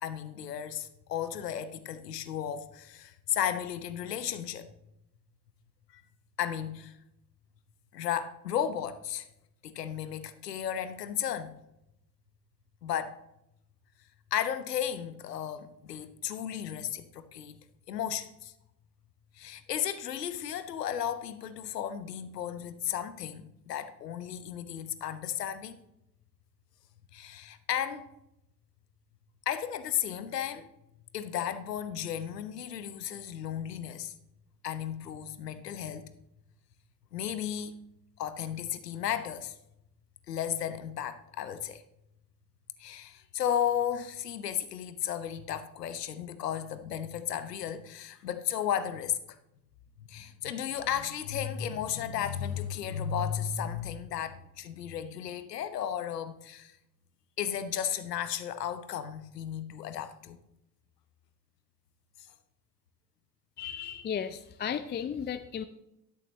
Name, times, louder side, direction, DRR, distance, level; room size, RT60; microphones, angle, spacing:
voice 1, 0.0-4.7 5.9-6.0 6.4-7.0 7.9-9.3 9.6-11.5 12.8-13.2 14.3-17.6 17.9-18.5 19.3-25.8 27.1-28.1 29.5-30.6 31.1-34.1 34.6-36.0 37.1-37.8 38.2-39.5 40.3-41.8 42.8-49.4 50.0-56.8 57.4-60.4, left 9 dB, 80° left, 1.0 m, -34 dB
voice 2, 63.6-65.6, left 8 dB, 20° left, 0.5 m, -35 dB
13.0 x 9.8 x 3.1 m
figure-of-eight pair, 60°, 48 cm